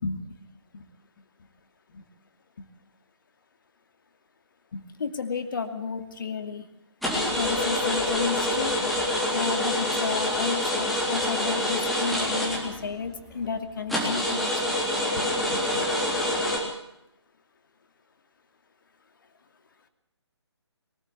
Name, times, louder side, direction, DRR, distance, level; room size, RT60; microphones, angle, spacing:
voice 1, 4.7-6.6 7.3-8.8 9.3-14.6 15.2-15.9, left 5 dB, 45° left, 7 dB, 2.6 m, -32 dB
sound 1, 7.0-13.1 13.4-13.5 13.9-16.6, left 1 dB, ahead, 3.7 m, -26 dB
23.0 x 14.5 x 8.5 m, 0.84 s
figure-of-eight pair, 145°, 15 cm